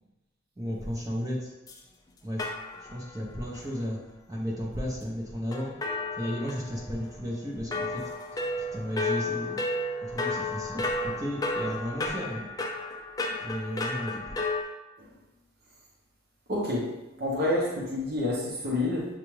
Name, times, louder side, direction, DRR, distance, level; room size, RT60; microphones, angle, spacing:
voice 1, 0.6-1.5 2.2-2.5 2.8-4.0 4.3-5.7 6.1-8.1 8.7-9.6 10.1-12.5 13.4-14.2, equal, 15° right, -4 dB, 0.6 m, -34 dB
sound 1, 1.7-1.8 2.4-3.2 3.5-3.6 5.5-7.1 7.7-14.6, left 2 dB, 15° left, 0.3 m, -32 dB
voice 2, 16.5-16.9 17.2-19.1, left 2 dB, 50° right, -5 dB, 0.9 m, -28 dB
7.1 x 2.4 x 3.1 m, 1.0 s
head